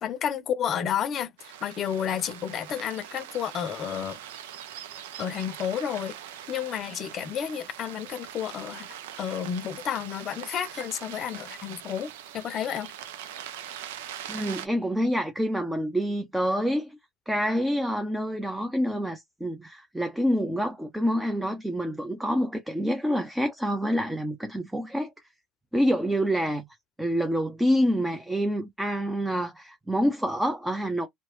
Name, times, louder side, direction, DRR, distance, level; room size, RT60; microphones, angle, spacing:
voice 1, 0.0-4.2 5.2-6.2 6.5-8.9 9.2-12.9, left 9 dB, 50° left, 0.6 m, -31 dB
sound 1, 1.4-14.7, right 10 dB, 85° right, 0.5 m, -42 dB
voice 2, 14.3-17.0 17.3-25.1 25.7-26.7 27.0-31.1, equal, 5° right, 0.6 m, -27 dB
2.9 x 2.1 x 3.0 m
supercardioid pair, 80°, 0 cm